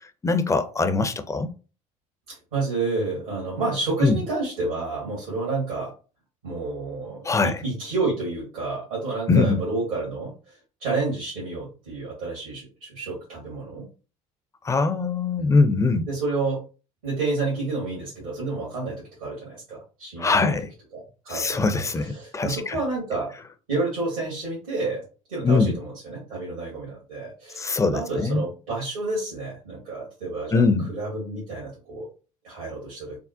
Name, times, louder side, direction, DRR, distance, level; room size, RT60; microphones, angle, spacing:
voice 1, 0.2-1.5 4.0-4.2 7.2-7.6 9.3-9.6 14.6-16.1 20.2-20.7 21.3-22.8 25.4-25.8 27.6-28.4 30.5-30.9, left 4 dB, 15° left, 0.5 m, -22 dB
voice 2, 2.3-5.9 6.4-13.9 15.4-15.6 16.1-16.6 17.0-20.6 20.9-21.6 22.0-23.4 23.7-25.0 25.3-32.1 32.4-33.2, right 3 dB, 90° right, 1.6 m, -30 dB
3.6 x 2.1 x 2.5 m
hypercardioid pair, 70°, 17 cm